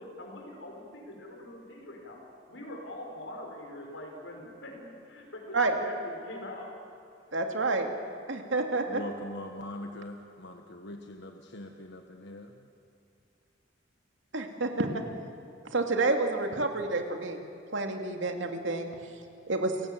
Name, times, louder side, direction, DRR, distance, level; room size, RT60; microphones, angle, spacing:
voice 1, 0.0-2.2 2.5-6.7, left 1 dB, 85° left, 1 dB, 5.7 m, -43 dB
voice 2, 7.3-7.9 8.3-9.0 14.3-14.9 15.7-17.4 17.7-18.9 19.5-19.7, right 3 dB, 85° right, 4 dB, 2.5 m, -29 dB
voice 3, 8.8-12.5, left 1 dB, 65° left, 4 dB, 1.4 m, -42 dB
29.5 x 17.5 x 7.6 m, 2.7 s
head